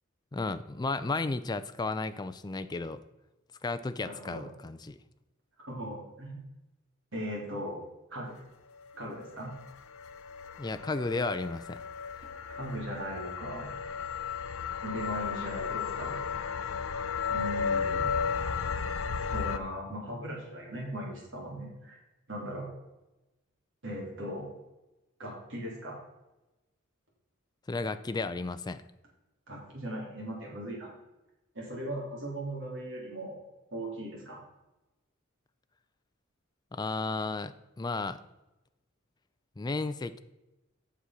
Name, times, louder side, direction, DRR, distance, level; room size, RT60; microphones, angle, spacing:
voice 1, 0.3-3.0 3.6-5.0 10.6-11.8 27.7-28.8 36.7-38.2 39.6-40.2, left 3 dB, 20° left, 12 dB, 0.4 m, -33 dB
voice 2, 4.0-4.4 5.7-6.4 7.1-7.8 8.1-8.3 8.9-9.5 12.5-13.8 14.8-16.2 17.3-18.1 19.3-22.0 22.3-22.7 23.8-24.4 25.2-26.0 29.5-30.9 31.5-33.4 33.7-34.4, equal, 60° right, -3 dB, 3.4 m, -38 dB
sound 1, 9.0-19.6, left 6 dB, 85° left, 0.5 m, -34 dB
8.4 x 6.3 x 5.9 m, 1.0 s
head